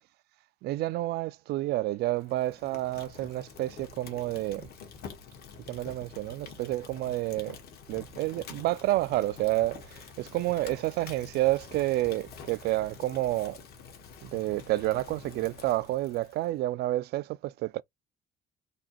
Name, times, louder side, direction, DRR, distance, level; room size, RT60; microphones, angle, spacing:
voice 1, 0.6-4.7 5.7-7.6 7.9-13.6 14.2-17.8, right 17 dB, 70° right, 0.4 m, -29 dB
Fire, 2.1-16.5, left 6 dB, 65° left, 1.4 m, -47 dB
4.2 x 2.7 x 3.0 m
cardioid pair, 110°, 17 cm